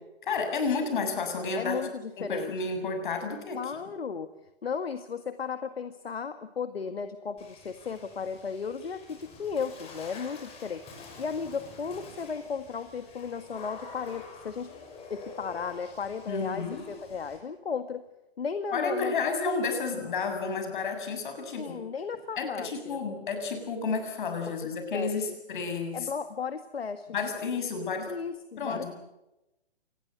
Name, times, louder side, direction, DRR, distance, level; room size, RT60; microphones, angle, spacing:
voice 1, 0.2-1.8 2.2-3.6 16.3-16.9 18.7-21.8 22.4-26.1 27.1-28.1 28.6-28.9, left 4 dB, 50° left, 6 dB, 7.4 m, -31 dB
voice 2, 1.6-2.5 3.5-4.3 4.6-10.8 11.2-14.7 15.1-18.0 18.4-19.4 21.6-23.0 24.6-25.4 25.9-27.1 28.1-28.9, left 6 dB, 65° left, 10 dB, 1.9 m, -35 dB
Water / Splash splatter, 7.4-17.4, left 4 dB, 20° left, 6.3 m, -48 dB
28.0 x 20.0 x 8.1 m, 0.94 s
figure-of-eight pair, 135°, 32 cm